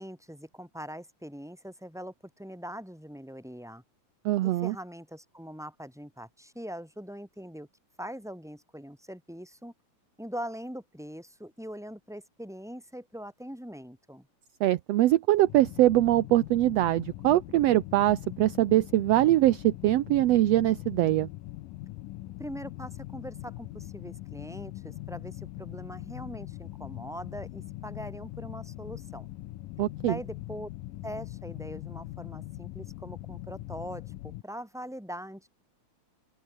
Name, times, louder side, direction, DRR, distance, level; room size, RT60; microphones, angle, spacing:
voice 1, 0.0-3.8 4.4-7.7 8.0-9.7 10.2-14.3 22.4-29.3 30.1-30.7 31.0-35.5, equal, ahead, 7.1 m, -42 dB
voice 2, 4.2-4.7 14.6-21.3 29.8-30.2, right 15 dB, 70° right, 1.6 m, -23 dB
sound 1, 15.4-34.4, left 17 dB, 90° left, 2.5 m, -42 dB
open air
omnidirectional pair, 3.7 m